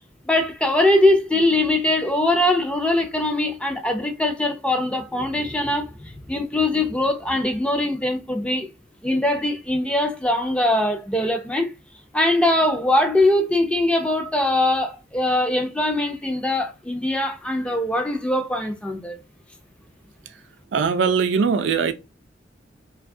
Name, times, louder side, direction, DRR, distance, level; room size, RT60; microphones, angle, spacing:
voice 1, 0.2-8.7 9.0-11.7 12.1-19.2, left 1 dB, 5° left, 0.4 m, -22 dB
voice 2, 20.7-21.9, right 5 dB, 70° right, 0.4 m, -20 dB
2.6 x 2.2 x 2.6 m
head